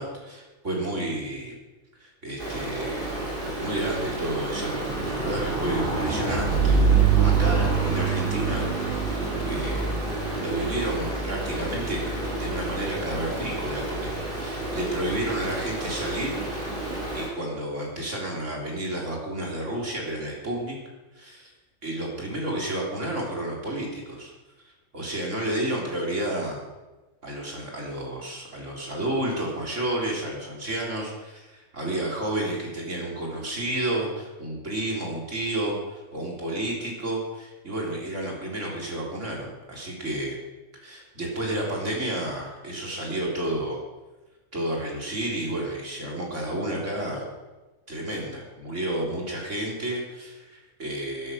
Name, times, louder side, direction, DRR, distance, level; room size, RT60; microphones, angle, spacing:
voice 1, 0.0-1.5 2.0-3.1 3.6-6.8 7.2-10.0 10.3-16.4 16.7-20.8 21.2-21.5 21.8-24.3 24.9-26.6 27.2-40.4 40.8-43.8 44.5-47.3 47.9-51.3, right 1 dB, 60° right, -2 dB, 4.1 m, -31 dB
Stream, 2.4-17.3, right 4 dB, 40° right, 3.5 m, -27 dB
13.0 x 11.0 x 6.5 m, 1.1 s
omnidirectional pair, 1.4 m